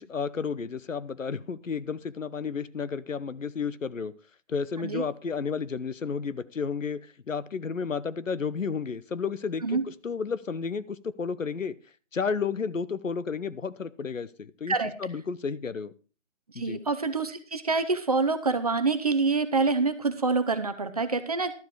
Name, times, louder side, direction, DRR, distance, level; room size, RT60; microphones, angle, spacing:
voice 1, 0.0-4.1 4.5-7.0 7.3-11.7 12.1-14.7 15.0-15.9 16.5-16.8, left 5 dB, 85° left, 16 dB, 0.9 m, -32 dB
voice 2, 16.6-21.5, right 4 dB, 30° right, 10 dB, 0.8 m, -26 dB
12.0 x 7.4 x 4.7 m, 0.38 s
figure-of-eight pair, 155°, 38 cm